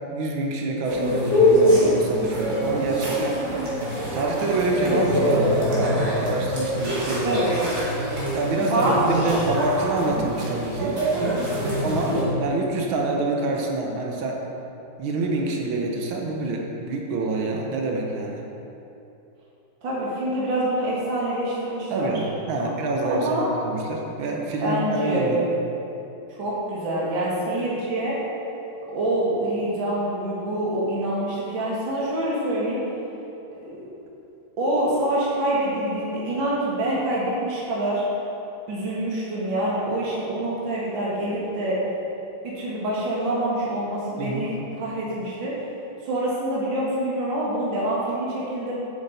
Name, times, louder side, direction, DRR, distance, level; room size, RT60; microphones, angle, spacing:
voice 1, 0.1-3.4 4.1-7.4 8.3-11.0 11.8-12.1 12.4-14.4 15.0-18.4 21.9-25.4 44.2-44.5, right 2 dB, 85° right, 0 dB, 1.8 m, -26 dB
sound 1, 0.8-12.2, equal, 45° right, 2.7 m, -24 dB
voice 2, 8.5-9.5 11.6-12.3 19.8-22.2 22.6-22.7 23.1-23.5 24.6-25.4 26.4-28.2 28.9-32.8 33.6-33.9 34.6-38.1 38.7-41.8 42.4-45.5 46.0-48.7, right 1 dB, 65° right, -6 dB, 2.4 m, -26 dB
8.9 x 7.5 x 4.1 m, 3.0 s
omnidirectional pair, 2.2 m